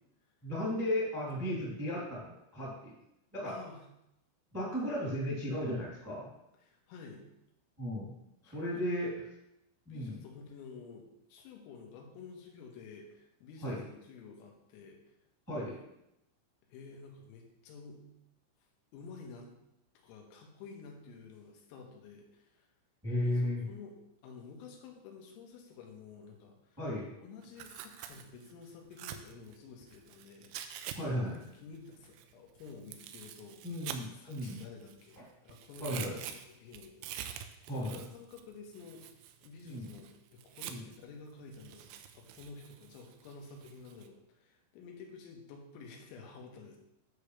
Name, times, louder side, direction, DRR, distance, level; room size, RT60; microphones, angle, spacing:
voice 1, 0.4-2.9 3.3-3.5 4.5-6.3 7.8-8.1 8.4-9.1 9.8-10.2 13.6-13.8 15.5-15.8 23.0-23.6 26.8-27.1 30.9-31.4 33.6-34.6 35.8-36.2 37.7-38.0 39.6-39.9 40.7-40.8, left 1 dB, 5° right, -6 dB, 1.3 m, -35 dB
voice 2, 3.5-3.9 6.6-7.2 8.5-9.1 9.9-15.0 16.6-18.0 18.9-19.5 20.0-22.7 23.2-24.0 24.2-26.8 27.2-30.5 31.5-33.6 34.2-37.5 37.9-39.1 39.4-46.8, left 4 dB, 85° left, 1 dB, 3.9 m, -51 dB
Tearing, 27.4-31.0 31.3-35.2 35.5-41.0 41.5-44.1, right 10 dB, 85° right, 3.2 m, -47 dB
9.9 x 6.8 x 3.3 m, 0.84 s
omnidirectional pair, 6.0 m